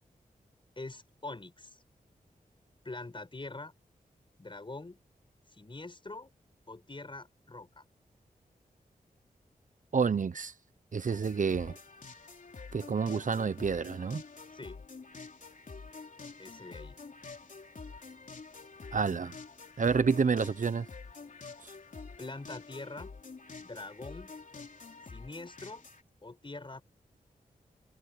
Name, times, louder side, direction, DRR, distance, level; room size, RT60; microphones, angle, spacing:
voice 1, 0.8-1.8 2.8-3.7 4.4-5.0 5.5-6.3 6.7-7.8 14.5-14.8 16.4-17.0 22.2-23.1 23.6-24.3 25.0-25.9 26.2-26.8, left 2 dB, 35° left, 5.7 m, -44 dB
voice 2, 9.9-10.5 10.9-11.7 12.7-14.2 18.9-19.3 19.8-20.9, right 5 dB, 55° right, 0.9 m, -29 dB
sound 1, 11.1-26.0, left 4 dB, 55° left, 3.9 m, -48 dB
cardioid pair, 60°, 16 cm